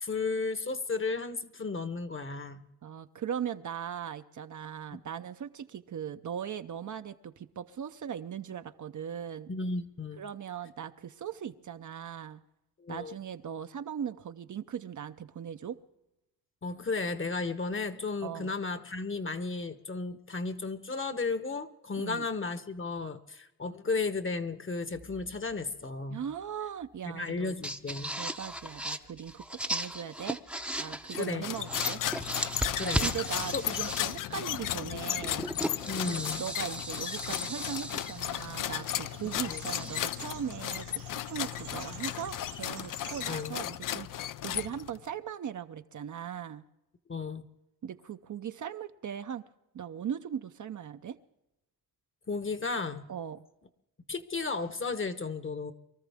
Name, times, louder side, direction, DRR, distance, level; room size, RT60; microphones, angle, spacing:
voice 1, 0.0-2.7 4.9-5.0 9.5-10.2 12.8-13.1 16.6-26.2 27.1-28.1 31.1-31.5 32.7-33.1 33.5-33.6 35.9-36.4 39.5-39.6 43.3-43.6 47.1-47.4 52.3-53.1 54.1-55.7, left 4 dB, 30° left, 11 dB, 1.1 m, -34 dB
voice 2, 2.8-9.5 10.2-12.4 12.9-15.8 18.2-18.5 22.0-22.3 26.1-27.5 28.2-30.4 30.8-32.0 32.8-35.5 36.1-46.6 47.8-49.4 49.7-51.2 53.1-53.4, right 8 dB, 50° right, 9 dB, 0.7 m, -39 dB
sound 1, 24.9-25.5 27.3-27.4 27.6-31.2 31.5-34.4 35.2-40.1, right 1 dB, 5° right, 0.7 m, -37 dB
sound 2, 31.1-45.1, left 12 dB, 55° left, 0.5 m, -35 dB
sound 3, 37.7-43.4, right 7 dB, 85° right, 2.2 m, -49 dB
23.5 x 13.5 x 3.5 m, 0.90 s
cardioid pair, 70°, 39 cm